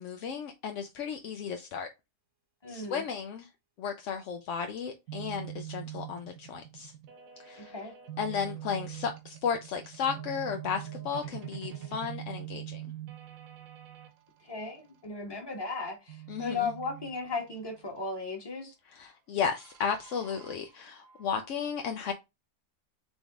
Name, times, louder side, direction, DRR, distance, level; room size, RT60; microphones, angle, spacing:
voice 1, 0.0-1.9 2.7-3.5 3.8-6.9 7.4-7.7 8.2-12.8 16.3-16.7 18.9-22.1, left 6 dB, 65° left, 0.7 m, -34 dB
voice 2, 2.6-3.0 7.7-7.9 14.4-18.7, left 4 dB, 15° left, 1.3 m, -36 dB
sound 1, 5.1-14.1 16.1-18.0 19.5-21.5, right 12 dB, 65° right, 1.2 m, -44 dB
4.0 x 3.5 x 3.5 m
omnidirectional pair, 1.7 m